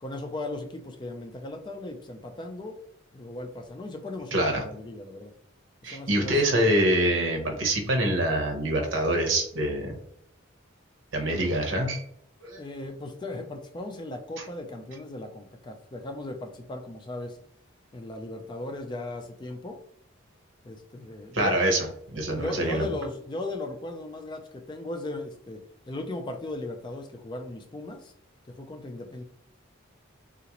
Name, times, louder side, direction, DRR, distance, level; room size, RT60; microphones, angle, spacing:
voice 1, 0.0-2.8 3.1-5.3 5.8-6.4 12.6-17.4 17.9-19.8 20.6-21.6 22.4-28.1 28.5-29.2, left 2 dB, 25° left, 5 dB, 0.3 m, -37 dB
voice 2, 4.3-4.6 5.8-9.9 11.1-12.0 12.4-12.6 21.3-21.9 22.1-22.9, right 1 dB, 75° right, 3 dB, 0.8 m, -25 dB
3.8 x 2.5 x 2.9 m, 0.70 s
head